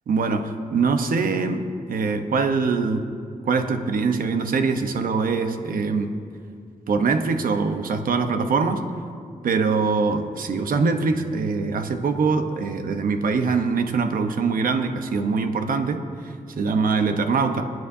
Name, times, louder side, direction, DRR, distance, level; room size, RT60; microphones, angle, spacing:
voice 1, 0.1-3.1 3.5-6.1 6.9-8.8 9.4-16.0 16.2-17.6, right 4 dB, 75° right, 7 dB, 1.0 m, -23 dB
26.5 x 9.4 x 2.8 m, 2.3 s
cardioid pair, 90°, 14 cm